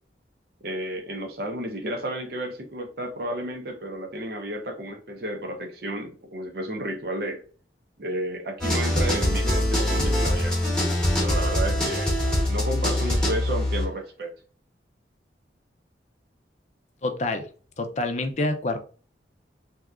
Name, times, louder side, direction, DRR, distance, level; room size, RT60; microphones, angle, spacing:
voice 1, 0.6-7.4 8.0-10.6 11.2-12.1 12.5-14.3, right 1 dB, 60° right, 0.7 m, -32 dB
sound 1, 8.6-13.9, left 1 dB, 5° left, 1.0 m, -23 dB
voice 2, 17.0-17.5 17.8-18.8, left 2 dB, 40° left, 0.5 m, -27 dB
3.4 x 2.8 x 2.4 m
head